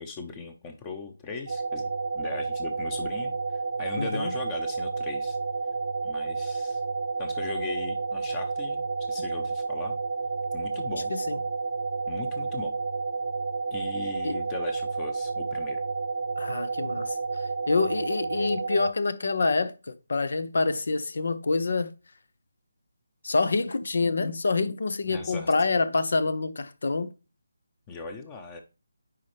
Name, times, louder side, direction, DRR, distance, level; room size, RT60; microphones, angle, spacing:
voice 1, 0.0-1.9 2.1-3.4 3.8-5.4 6.0-6.8 7.2-10.0 10.5-11.1 12.1-12.7 13.7-15.8 25.1-25.5 27.9-28.6, left 4 dB, 20° left, 0.9 m, -39 dB
sound 1, 1.5-18.9, right 4 dB, 55° right, 0.5 m, -31 dB
voice 2, 4.0-4.3 11.1-11.4 14.2-14.4 16.4-17.2 17.7-19.7 20.1-21.9 23.2-27.1, left 3 dB, 60° left, 0.9 m, -26 dB
9.7 x 4.2 x 3.3 m
figure-of-eight pair, 155°, 0 cm